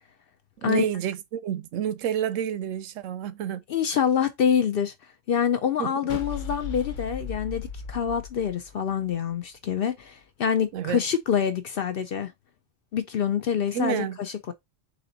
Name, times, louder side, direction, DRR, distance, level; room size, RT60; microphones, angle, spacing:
voice 1, 0.6-3.6 5.8-6.2 10.7-11.0 13.7-14.2, right 9 dB, 80° right, 0.9 m, -29 dB
voice 2, 3.7-4.9 5.3-12.3 12.9-14.5, left 8 dB, 60° left, 0.6 m, -26 dB
sound 1, 6.1-9.3, left 6 dB, 75° left, 1.2 m, -36 dB
4.1 x 2.8 x 3.8 m
omnidirectional pair, 1.3 m